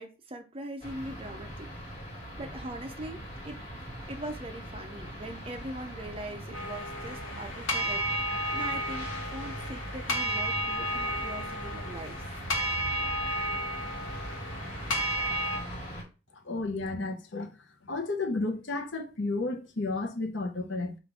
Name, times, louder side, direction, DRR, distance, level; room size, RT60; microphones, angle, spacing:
voice 1, 0.0-2.0 2.4-12.4, right 1 dB, 30° right, 0.5 m, -42 dB
sound 1, 0.8-16.0, equal, 30° left, 1.7 m, -41 dB
sound 2, 6.5-15.6, equal, 85° left, 1.2 m, -32 dB
voice 2, 16.3-17.5 17.9-21.0, left 3 dB, 65° left, 0.8 m, -32 dB
3.8 x 2.5 x 4.6 m
head